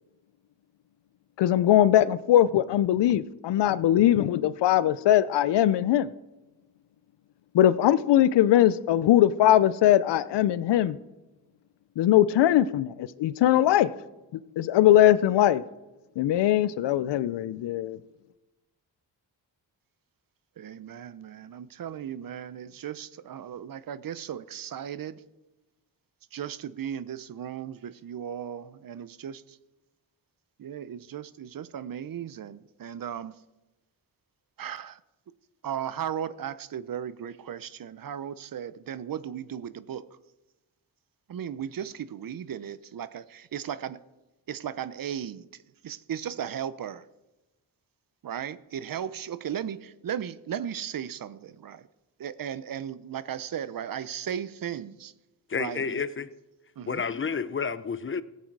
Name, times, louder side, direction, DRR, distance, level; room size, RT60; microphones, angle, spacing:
voice 1, 1.4-6.1 7.5-11.0 12.0-13.9 14.6-15.6 16.2-18.0, left 12 dB, 85° left, 0.6 m, -21 dB
voice 2, 20.6-25.2 26.3-29.4 30.6-33.3 34.6-35.0 35.6-40.0 41.3-44.0 44.5-45.5 45.8-47.0 48.2-51.8 52.2-55.1 55.6-56.0 56.8-57.0, right 9 dB, 55° right, 0.7 m, -36 dB
voice 3, 55.5-56.3 56.9-58.2, left 5 dB, 30° left, 0.6 m, -30 dB
16.0 x 8.5 x 4.7 m
cardioid pair, 70°, 41 cm